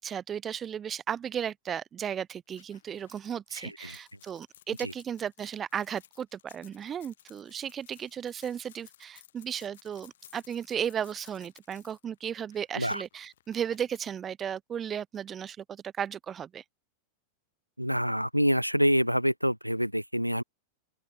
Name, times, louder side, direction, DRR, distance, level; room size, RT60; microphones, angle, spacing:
voice 1, 0.0-16.6, right 8 dB, 25° right, 0.6 m, -35 dB
sound 1, 2.5-14.2, left 11 dB, 60° left, 5.6 m, -58 dB
voice 2, 3.6-4.0 4.8-4.9 12.8-13.0 17.8-20.4, equal, 90° right, 0.5 m, -27 dB
open air
figure-of-eight pair, 90°, 0 cm